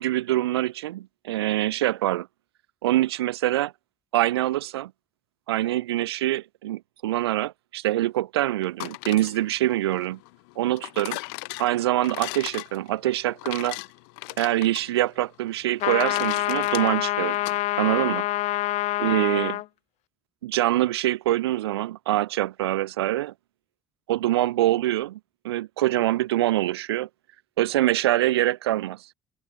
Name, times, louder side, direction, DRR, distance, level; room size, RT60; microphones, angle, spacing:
voice 1, 0.0-2.3 2.8-3.7 4.1-4.9 5.5-10.2 10.6-11.2 11.6-13.8 14.4-17.4 17.8-18.2 19.0-19.6 20.4-23.3 24.1-25.2 25.4-27.1 27.6-29.1, right 15 dB, 85° right, 1.1 m, -24 dB
sound 1, 8.6-17.6, left 37 dB, 75° left, 2.7 m, -38 dB
sound 2, 15.8-19.7, left 16 dB, 60° left, 0.5 m, -26 dB
hypercardioid pair, 55°, 13 cm